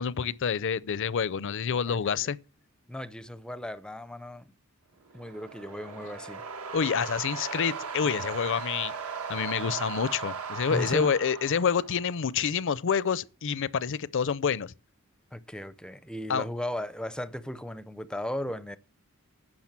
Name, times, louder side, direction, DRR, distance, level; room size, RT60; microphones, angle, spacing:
voice 1, 0.0-2.4 6.7-8.9 9.3-14.7 16.3-16.4, left 6 dB, 60° left, 0.5 m, -28 dB
voice 2, 1.9-2.3 2.9-4.5 5.1-6.4 10.7-11.1 15.3-18.8, left 1 dB, 5° left, 0.5 m, -36 dB
sound 1, 5.1-12.2, right 5 dB, 80° right, 1.3 m, -37 dB
10.5 x 6.1 x 7.3 m
head